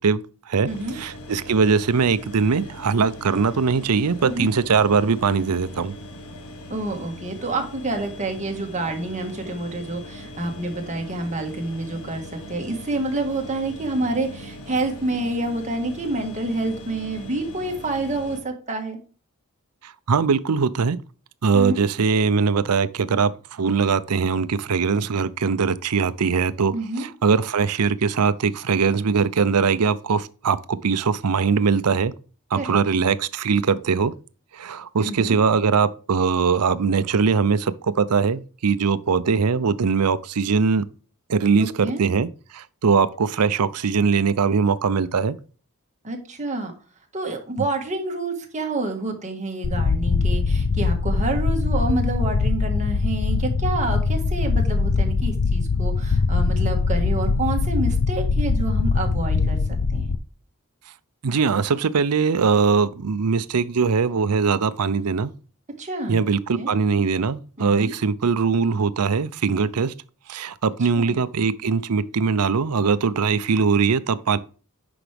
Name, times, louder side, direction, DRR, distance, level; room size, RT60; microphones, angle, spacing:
voice 1, 0.0-5.9 19.8-21.0 21.4-32.1 32.5-34.1 34.5-40.9 41.3-45.4 61.2-65.3 66.1-69.9 70.3-74.4, right 5 dB, 90° right, 0.6 m, -21 dB
sound 1, 0.7-18.4, left 1 dB, 90° left, 1.6 m, -40 dB
voice 2, 0.7-1.0 4.2-4.5 6.7-19.0 21.5-21.9 26.7-27.1 32.5-32.8 35.0-35.4 41.6-42.0 46.0-46.7 47.1-60.1 65.8-66.2 66.5-66.7 67.6-67.9 70.9-71.2, right 2 dB, 35° right, 1.7 m, -28 dB
sound 2, 49.6-60.2, left 4 dB, 60° left, 0.5 m, -22 dB
9.9 x 5.9 x 3.4 m
head